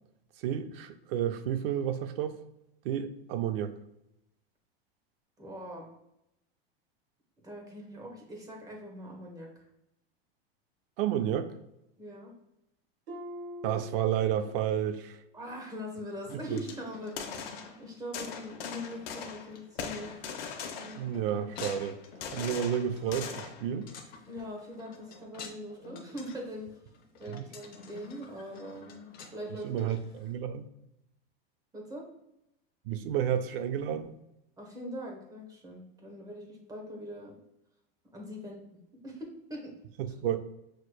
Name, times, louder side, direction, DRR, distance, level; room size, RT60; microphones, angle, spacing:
voice 1, 0.4-2.4 2.8-3.7 11.0-11.5 13.6-15.2 16.3-16.6 21.0-22.0 22.3-23.9 27.3-27.4 29.6-30.7 32.9-34.1 40.0-40.4, right 9 dB, 65° right, 9 dB, 0.5 m, -31 dB
voice 2, 5.4-5.9 7.4-9.7 12.0-12.3 15.3-20.1 24.3-26.7 27.2-28.9 29.3-29.7 31.7-32.1 34.6-37.3 38.1-38.8 39.0-39.7 40.1-40.2, equal, 10° right, 0 dB, 0.9 m, -42 dB
Harp, 13.1-14.8 15.2-15.6 16.2-16.3, left 1 dB, 85° right, 1.4 m, -45 dB
sound 1, 16.2-30.3, left 4 dB, 30° left, 0.7 m, -50 dB
sound 2, 16.5-16.7 17.1-17.8 18.1-19.5 19.8-21.2 21.6-23.7, left 6 dB, 70° left, 0.9 m, -40 dB
6.4 x 3.0 x 2.2 m, 0.85 s
supercardioid pair, 140°, 30 cm